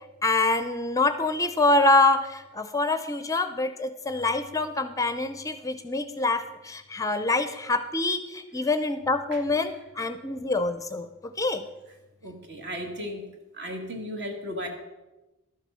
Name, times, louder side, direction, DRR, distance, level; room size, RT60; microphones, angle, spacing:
voice 1, 0.2-11.1 11.4-11.6, left 2 dB, 15° left, 10 dB, 0.5 m, -25 dB
voice 2, 12.2-13.2 13.6-14.7, equal, 55° right, 4 dB, 1.8 m, -35 dB
12.0 x 7.3 x 5.5 m, 1.0 s
head